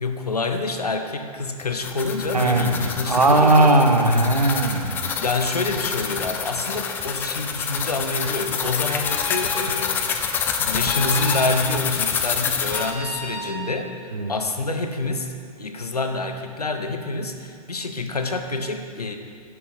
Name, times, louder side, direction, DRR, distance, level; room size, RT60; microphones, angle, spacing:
voice 1, 0.0-3.8 5.2-10.2 10.6-15.3 15.6-19.2, left 3 dB, 85° left, 5 dB, 0.8 m, -27 dB
sound 1, 1.6-13.0, left 6 dB, 10° left, 0.3 m, -27 dB
voice 2, 2.3-5.1 14.1-14.3, right 2 dB, 85° right, 4 dB, 0.9 m, -18 dB
sound 2, 9.0-9.5 10.8-11.5 12.7-13.6, left 2 dB, 55° left, 1.5 m, -32 dB
9.5 x 5.6 x 4.1 m, 2.2 s
figure-of-eight pair, 110°, 20 cm